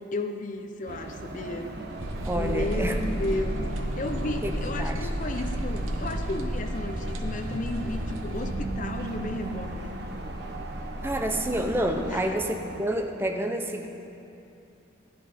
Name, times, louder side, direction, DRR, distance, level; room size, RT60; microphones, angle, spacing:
voice 1, 0.1-1.7 2.3-9.9 12.1-12.4, left 2 dB, 40° left, 6 dB, 0.6 m, -33 dB
sound 1, 0.9-13.0, right 1 dB, 55° right, 1.0 m, -39 dB
sound 2, 1.8-12.3, right 1 dB, 40° right, 1.9 m, -37 dB
sound 3, 2.0-8.7, equal, 90° right, 1.0 m, -33 dB
voice 2, 2.2-3.0 4.4-4.5 4.8-5.0 11.0-13.9, right 1 dB, 10° right, 4 dB, 0.6 m, -28 dB
14.5 x 10.5 x 4.3 m, 2.8 s
head